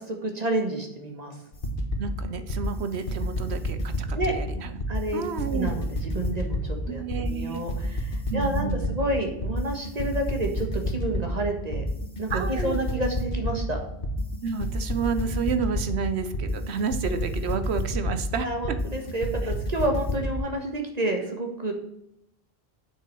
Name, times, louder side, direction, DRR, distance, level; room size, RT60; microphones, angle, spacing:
voice 1, 0.0-1.4 4.1-4.3 4.9-5.2 5.5-11.9 12.2-13.8 18.4-21.7, right 1 dB, 40° right, 3 dB, 1.6 m, -29 dB
sound 1, 1.5-20.4, left 1 dB, 55° left, 1.5 m, -29 dB
voice 2, 2.0-4.8 5.1-5.7 6.9-7.6 8.3-9.0 12.3-12.8 14.4-18.8, right 5 dB, 80° right, 9 dB, 1.1 m, -30 dB
8.7 x 7.0 x 4.6 m, 0.77 s
omnidirectional pair, 1.1 m